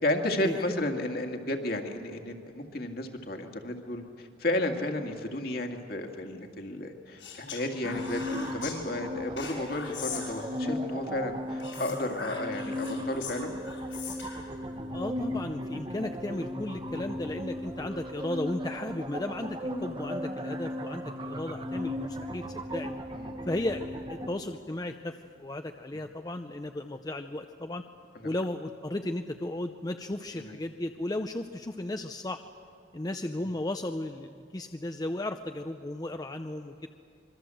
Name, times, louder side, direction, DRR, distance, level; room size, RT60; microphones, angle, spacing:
voice 1, 0.0-13.5 23.1-23.4 30.3-30.6, left 1 dB, 50° left, 4 dB, 2.1 m, -33 dB
Speech, 7.2-8.8 9.4-10.8 11.6-14.5, left 6 dB, 90° left, 6.4 m, -41 dB
sound 1, 7.8-24.3, left 1 dB, 25° right, 1.3 m, -36 dB
voice 2, 14.9-23.0 23.4-27.8 28.2-32.4 32.9-36.9, left 1 dB, 20° left, 6 dB, 0.6 m, -35 dB
25.5 x 23.0 x 7.7 m, 2.5 s
head